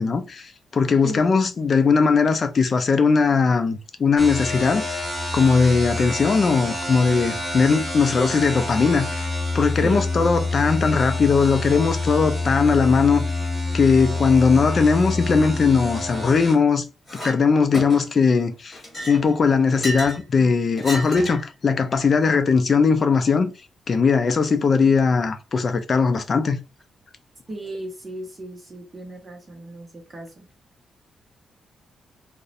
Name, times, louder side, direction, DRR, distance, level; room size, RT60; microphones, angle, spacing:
voice 1, 0.0-5.0 5.3-9.1 9.5-13.2 13.7-16.9 17.2-18.8 19.1-23.5 23.9-26.6, left 5 dB, 40° left, 0.3 m, -19 dB
sound 1, 4.2-16.6, left 2 dB, ahead, 0.8 m, -27 dB
Chink clink, 17.1-17.4 17.7-18.2 18.7-20.2 20.8-21.5, equal, 15° left, 1.3 m, -32 dB
voice 2, 27.5-30.5, right 1 dB, 25° right, 0.6 m, -34 dB
2.6 x 2.0 x 2.4 m
wide cardioid pair, 145°, 0 cm